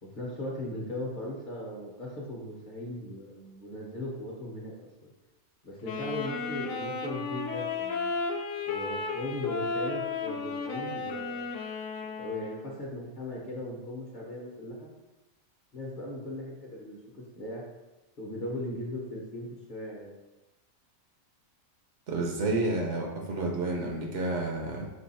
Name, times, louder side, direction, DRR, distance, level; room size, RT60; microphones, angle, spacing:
voice 1, 0.0-4.7 5.6-8.1 8.7-11.5 12.0-14.9 15.7-17.6 18.2-20.1, left 1 dB, 40° left, -4 dB, 0.9 m, -38 dB
Wind instrument woodwind instrument, 5.8-12.8, left 4 dB, 70° left, 0.9 m, -34 dB
voice 2, 22.1-24.9, right 2 dB, 65° right, 1 dB, 0.9 m, -30 dB
4.5 x 2.4 x 4.1 m, 1.0 s
omnidirectional pair, 1.4 m